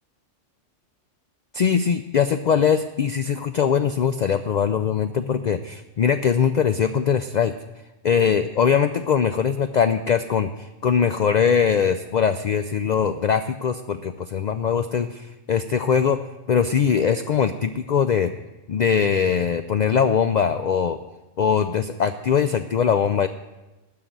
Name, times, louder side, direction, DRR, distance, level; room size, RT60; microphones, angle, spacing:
voice 1, 1.5-7.5 8.0-16.2 16.5-18.3 18.7-21.0 21.4-23.3, left 7 dB, 85° left, 9 dB, 0.3 m, -21 dB
11.0 x 5.8 x 7.9 m, 1.1 s
omnidirectional pair, 1.3 m